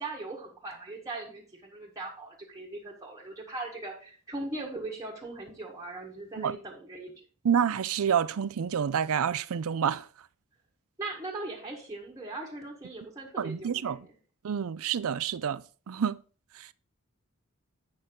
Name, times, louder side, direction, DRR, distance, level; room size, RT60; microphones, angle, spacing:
voice 1, 0.0-7.1 11.0-14.0, right 2 dB, 15° right, 1.6 m, -39 dB
voice 2, 7.4-10.1 13.4-14.0 14.4-16.2 16.6-16.7, right 8 dB, 65° right, 0.4 m, -28 dB
8.6 x 6.5 x 3.8 m
head